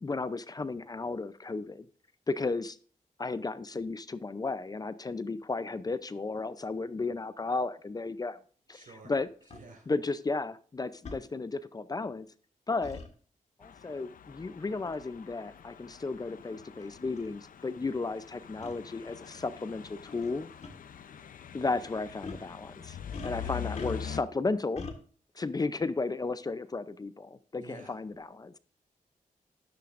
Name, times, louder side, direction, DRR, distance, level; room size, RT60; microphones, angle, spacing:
voice 1, 0.0-1.9 2.3-2.8 3.2-8.4 8.7-9.3 9.9-12.3 12.7-13.0 13.6-20.5 21.5-23.0 23.2-24.9 25.4-28.6, left 3 dB, 25° left, 14 dB, 0.5 m, -34 dB
voice 2, 8.7-9.1 9.5-9.9 23.4-23.7 27.5-28.0, right 3 dB, 75° right, 2 dB, 4.7 m, -50 dB
sound 1, 9.5-9.6 11.0-11.2 12.8-13.1 14.9-15.1 15.9-16.0 16.8-16.9 17.2-17.3 18.6-18.8 20.1-20.3 20.6-20.7 22.2-22.5 23.1-24.2 24.8-25.0, left 4 dB, 55° left, 1.7 m, -42 dB
sound 2, 13.6-24.2, left 8 dB, 80° left, 0.6 m, -44 dB
13.0 x 10.5 x 2.5 m, 0.42 s
wide cardioid pair, 140°, 14 cm